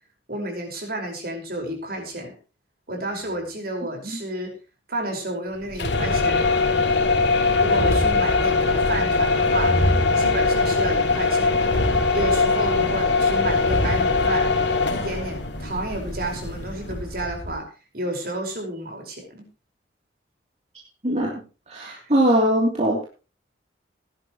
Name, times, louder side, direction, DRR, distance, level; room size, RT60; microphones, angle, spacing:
voice 1, 0.3-2.3 2.9-4.5 4.9-6.5 7.6-9.8 10.2-11.7 12.1-14.5 14.9-17.7 17.9-19.5 21.8-22.0, right 1 dB, 55° right, 2 dB, 5.2 m, -31 dB
sound 1, 5.7-17.6, left 3 dB, 70° left, 2.3 m, -21 dB
voice 2, 21.0-23.0, right 1 dB, 35° right, -2 dB, 3.1 m, -22 dB
18.5 x 11.5 x 3.1 m, 0.33 s
head